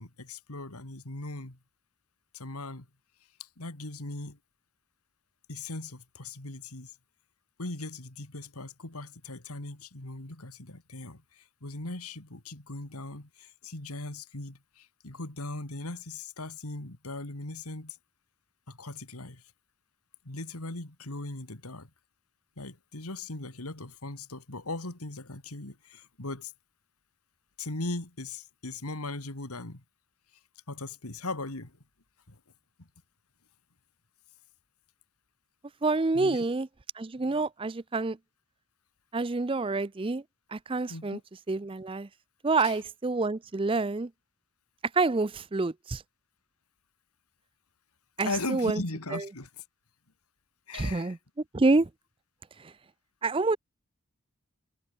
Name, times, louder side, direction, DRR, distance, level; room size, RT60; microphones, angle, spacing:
voice 1, 0.0-1.6 2.3-2.9 3.4-4.4 5.5-6.9 7.6-18.0 18.7-19.4 20.2-21.9 22.6-26.5 27.6-29.8 30.7-31.8 32.3-32.4 32.8-32.9 36.1-36.4 40.9-41.2 42.6-42.8 48.2-49.6 50.7-51.2, left 2 dB, 85° left, 2.8 m, -39 dB
voice 2, 35.8-36.7 37.0-38.2 39.1-40.2 40.5-41.2 41.5-42.1 42.4-44.1 44.9-46.0 48.2-48.8 49.1-49.3 50.7-51.2 51.5-51.9 52.6-52.7 53.2-53.6, right 3 dB, 25° right, 0.5 m, -27 dB
head